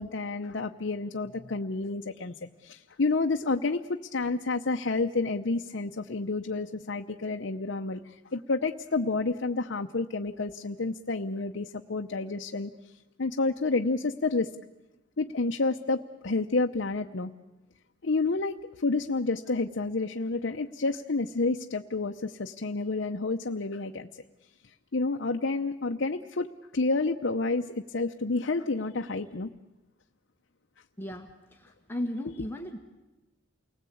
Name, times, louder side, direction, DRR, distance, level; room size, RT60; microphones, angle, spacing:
voice 1, 0.0-12.7 13.2-14.5 15.2-17.3 18.0-24.1 24.6-29.5 32.2-32.3, left 3 dB, 65° left, 4 dB, 0.8 m, -30 dB
voice 2, 31.0-31.3 31.6-32.8, left 1 dB, 10° left, 2 dB, 1.7 m, -35 dB
29.0 x 19.5 x 8.6 m, 1.0 s
head